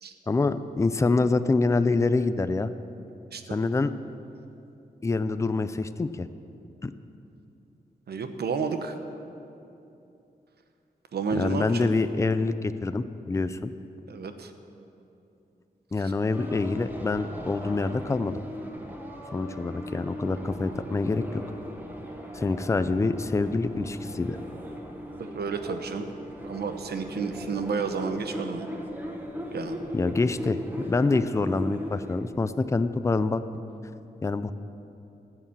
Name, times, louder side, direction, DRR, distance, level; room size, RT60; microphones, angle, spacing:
voice 1, 0.3-2.7 3.5-3.9 5.0-6.3 6.8-6.9 11.3-13.7 15.9-18.4 19.3-21.4 22.3-24.4 29.9-30.6 30.9-33.4 34.2-34.5, left 3 dB, 20° left, 12 dB, 0.4 m, -26 dB
voice 2, 8.1-9.0 11.1-11.9 14.1-14.5 16.0-16.1 25.2-26.1 26.4-28.7 29.5-29.8, right 5 dB, 90° right, 7 dB, 0.9 m, -31 dB
sound 1, 16.3-32.3, equal, 10° right, 1.2 m, -38 dB
14.0 x 8.0 x 7.2 m, 2.8 s
wide cardioid pair, 160°, 16 cm